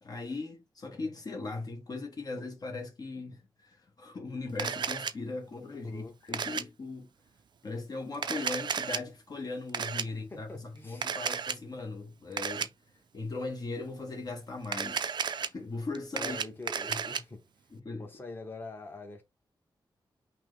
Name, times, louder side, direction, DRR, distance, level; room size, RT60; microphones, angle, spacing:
voice 1, 0.0-7.1 7.6-12.7 13.1-16.4 16.9-17.0 17.7-18.0, left 3 dB, 45° left, 1.0 m, -39 dB
Camera, 4.6-5.1 6.3-6.6 8.1-9.0 9.7-10.0 11.0-11.6 12.4-12.7 14.6-15.5 16.0-17.2, right 6 dB, 55° right, 0.4 m, -32 dB
voice 2, 5.8-6.4 10.1-11.2 16.1-17.5 18.0-19.2, left 3 dB, 25° left, 1.1 m, -45 dB
5.8 x 2.1 x 3.2 m
wide cardioid pair, 120°, 9 cm